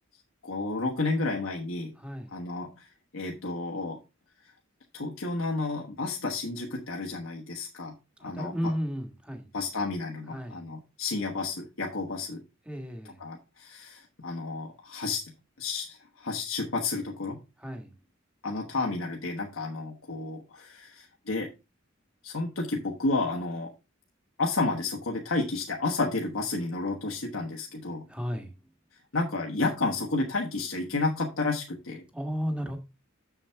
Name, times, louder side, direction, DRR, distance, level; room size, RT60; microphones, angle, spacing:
voice 1, 0.4-1.9 2.3-2.9 3.1-4.0 4.9-7.9 8.2-8.7 9.5-12.4 13.2-15.3 15.6-17.4 18.4-21.5 22.2-23.7 24.4-28.0 29.1-32.0, left 3 dB, 70° left, 1.3 m, -31 dB
voice 2, 2.0-2.3 8.2-9.5 10.3-10.6 12.6-13.2 17.6-17.9 28.1-28.5 32.1-32.8, equal, 5° right, 1.5 m, -34 dB
7.2 x 7.0 x 3.4 m
head